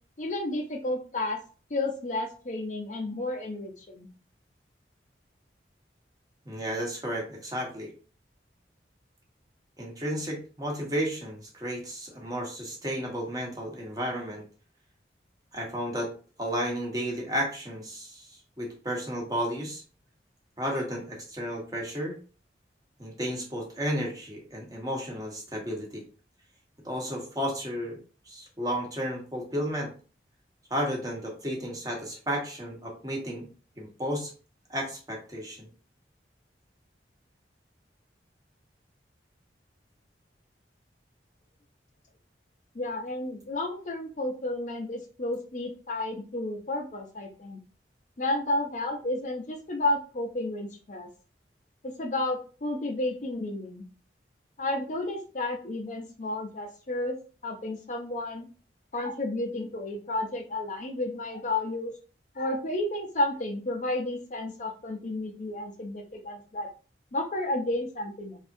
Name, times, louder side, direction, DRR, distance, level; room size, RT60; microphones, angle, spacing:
voice 1, 0.2-1.4 1.7-4.1 42.7-47.6 48.2-51.1 51.8-53.8 54.6-57.2 57.4-58.5 58.9-61.9 62.4-66.7 67.1-68.4, left 2 dB, 45° left, 3 dB, 0.6 m, -32 dB
voice 2, 6.4-7.9 9.8-14.4 15.5-16.1 16.4-19.8 20.6-22.2 23.0-26.0 26.8-28.0 28.2-29.9 30.7-33.5 33.8-34.3 34.7-35.7, equal, 20° right, -1 dB, 1.1 m, -33 dB
3.5 x 3.4 x 2.6 m, 0.37 s
head